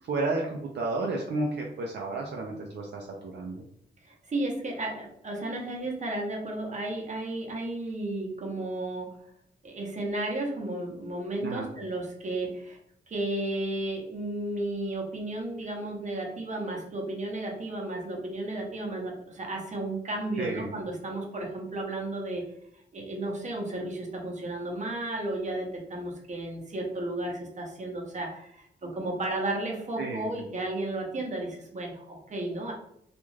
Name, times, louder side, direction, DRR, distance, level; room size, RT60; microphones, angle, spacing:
voice 1, 0.0-3.1 3.3-3.6 11.4-11.7 20.4-20.7 28.8-28.9 30.0-30.3, right 2 dB, 70° right, 0 dB, 0.5 m, -31 dB
voice 2, 4.0-9.1 9.6-12.8 13.1-22.4 22.9-32.7, right 2 dB, 40° right, 0 dB, 0.8 m, -33 dB
2.5 x 2.3 x 3.1 m, 0.72 s
cardioid pair, 95°, 19 cm